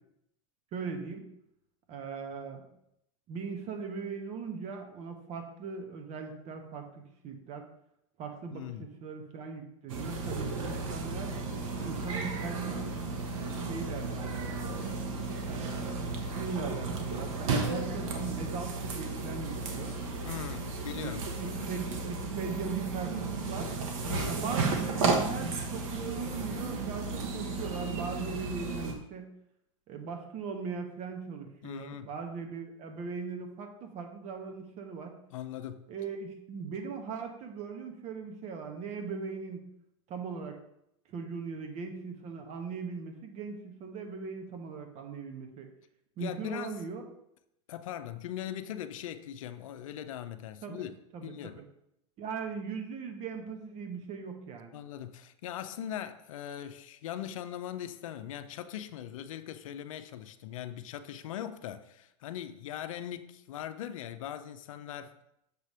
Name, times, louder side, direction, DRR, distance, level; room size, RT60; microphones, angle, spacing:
voice 1, 0.7-1.3 1.9-2.6 3.3-7.7 8.2-11.3 11.8-12.8 13.3-14.8 15.5-20.0 20.9-21.1 21.4-23.7 24.3-29.3 29.9-35.2 35.9-39.7 40.1-40.6 41.1-45.7 46.2-47.0 50.6-50.8 51.1-51.3 51.5-51.6 52.2-54.8, right 5 dB, 40° right, 1.1 m, -39 dB
voice 2, 8.5-8.9 20.2-21.7 24.1-24.4 31.6-32.1 35.3-35.9 46.2-46.8 47.7-51.6 54.7-65.1, left 10 dB, 85° left, 0.5 m, -40 dB
sound 1, 9.9-28.9, right 3 dB, 80° right, 1.1 m, -34 dB
6.8 x 3.3 x 5.4 m
supercardioid pair, 125°, 17 cm